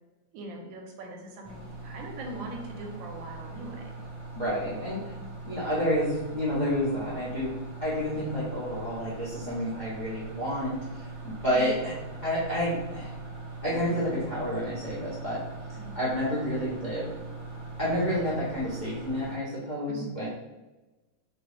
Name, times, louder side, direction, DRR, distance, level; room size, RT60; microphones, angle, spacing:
voice 1, 0.3-4.0 11.5-11.7 15.8-16.0 19.9-20.1, right 3 dB, 75° right, 1 dB, 1.2 m, -41 dB
sound 1, 1.4-19.4, right 3 dB, 10° left, 0.7 m, -41 dB
voice 2, 4.3-5.0 5.5-11.9 12.2-13.1 13.6-15.4 15.9-17.1 17.8-20.3, equal, 55° left, -9 dB, 0.5 m, -29 dB
3.0 x 2.9 x 3.2 m, 1.1 s
omnidirectional pair, 2.2 m